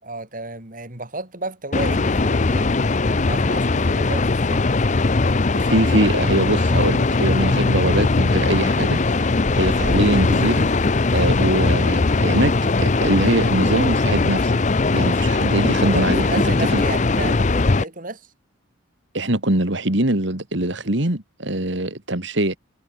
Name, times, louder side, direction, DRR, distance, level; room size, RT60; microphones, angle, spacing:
voice 1, 0.0-5.0 15.9-18.3, right 2 dB, 40° right, 4.0 m, -33 dB
sound 1, 1.7-17.8, left 3 dB, 35° left, 0.6 m, -19 dB
voice 2, 5.5-9.0 9.5-10.7 11.1-12.5 12.8-14.6 14.9-16.2 16.7-16.8 19.1-22.6, right 1 dB, 60° right, 2.8 m, -22 dB
head